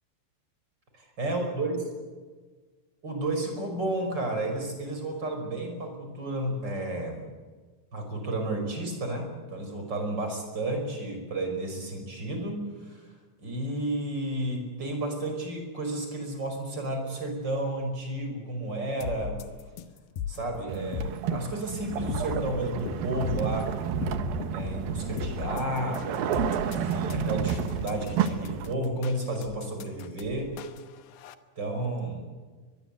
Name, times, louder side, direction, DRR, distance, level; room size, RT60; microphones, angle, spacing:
voice 1, 1.2-1.8 3.0-7.3 7.9-13.1 13.4-19.4 20.3-23.7 24.5-26.3 26.6-30.6 31.6-32.3, right 1 dB, 25° right, 4 dB, 5.7 m, -32 dB
sound 1, 19.0-31.3, left 9 dB, 70° left, 2.7 m, -38 dB
sound 2, 20.7-28.8, right 8 dB, 70° right, 2.8 m, -31 dB
23.0 x 22.0 x 8.1 m, 1.4 s
omnidirectional pair, 4.8 m